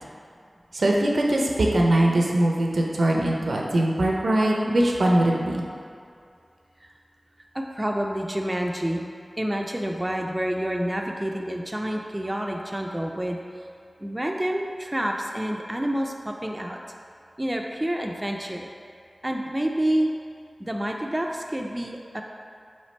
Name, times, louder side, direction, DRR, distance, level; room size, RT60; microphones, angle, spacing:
voice 1, 0.7-5.7, right 1 dB, 85° right, -1 dB, 0.4 m, -21 dB
voice 2, 7.5-9.0 9.4-13.4 14.0-16.8 17.4-18.7 19.2-20.1 20.6-22.2, right 1 dB, 20° right, 1 dB, 0.3 m, -28 dB
3.3 x 3.2 x 4.1 m, 2.4 s
wide cardioid pair, 45°, 0 cm